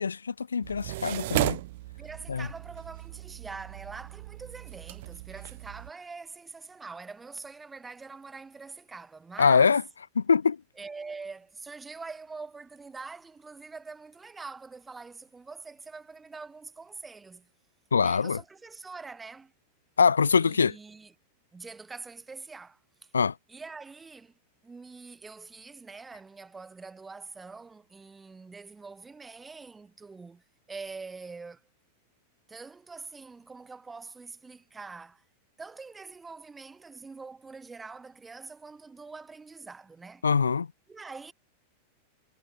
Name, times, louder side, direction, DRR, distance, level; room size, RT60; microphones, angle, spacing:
voice 1, 0.0-1.6 2.3-2.5 9.4-9.8 10.2-10.6 17.9-18.4 20.0-20.8 23.1-23.3 40.2-40.7, left 5 dB, 75° left, 0.4 m, -23 dB
sound 1, 0.6-5.9, right 18 dB, 50° right, 1.3 m, -35 dB
voice 2, 2.0-9.8 10.8-17.5 18.0-19.5 20.4-21.1 21.5-23.1 23.5-24.3 24.6-30.4 30.7-31.6 32.5-35.2 35.6-40.2 40.9-41.3, right 4 dB, 10° right, 2.8 m, -44 dB
figure-of-eight pair, 90°, 0 cm